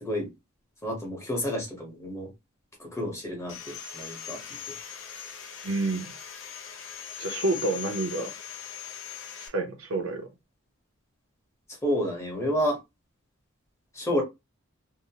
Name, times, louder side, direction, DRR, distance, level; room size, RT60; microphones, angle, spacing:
voice 1, 0.0-0.3 0.8-2.3 2.8-4.4 4.7-4.8 11.8-12.8 13.9-14.2, equal, 15° left, 1.0 m, -30 dB
Sawing, 3.5-9.5, left 8 dB, 60° left, 0.6 m, -40 dB
voice 2, 5.6-6.1 7.2-8.3 9.4-10.3, right 2 dB, 75° right, 0.7 m, -29 dB
2.8 x 2.1 x 2.8 m
head